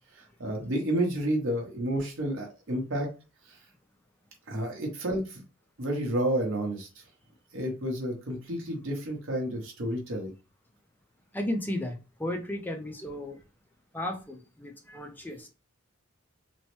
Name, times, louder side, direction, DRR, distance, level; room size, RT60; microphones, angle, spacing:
voice 1, 0.1-3.1 3.5-3.6 4.5-5.4 5.8-7.0 7.5-10.3, right 1 dB, 65° right, 0.8 m, -30 dB
voice 2, 11.3-13.4 13.9-15.5, left 1 dB, 10° left, 0.4 m, -34 dB
3.0 x 2.0 x 3.0 m
head